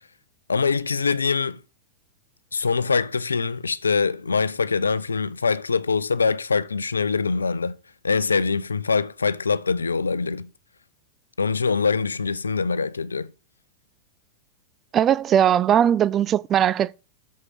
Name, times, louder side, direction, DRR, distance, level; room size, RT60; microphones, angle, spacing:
voice 1, 0.5-1.6 2.5-7.7 8.0-10.5 11.4-13.3, left 5 dB, 85° left, 0.5 m, -23 dB
voice 2, 14.9-16.9, right 10 dB, 30° right, 0.4 m, -19 dB
6.5 x 6.4 x 7.5 m
figure-of-eight pair, 95°, 0 cm